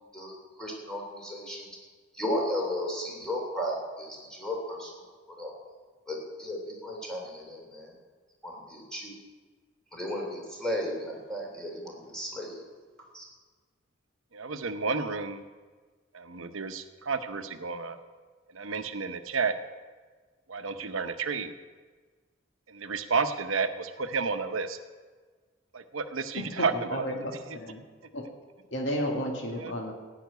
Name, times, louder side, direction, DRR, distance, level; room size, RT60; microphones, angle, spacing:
voice 1, 0.1-1.7 2.2-4.9 5.4-5.5 6.1-7.9 8.4-9.1 9.9-12.6 13.1-13.2, equal, 5° left, -2 dB, 3.1 m, -34 dB
voice 2, 14.3-15.4 16.1-18.0 18.5-19.5 20.5-21.5 22.7-24.8 25.7-27.6 29.5-29.7, right 4 dB, 85° right, 9 dB, 0.8 m, -31 dB
voice 3, 26.4-27.1 27.5-27.8 28.1-28.2 28.7-29.9, equal, 65° left, 0 dB, 2.0 m, -32 dB
15.5 x 6.0 x 9.3 m, 1.4 s
head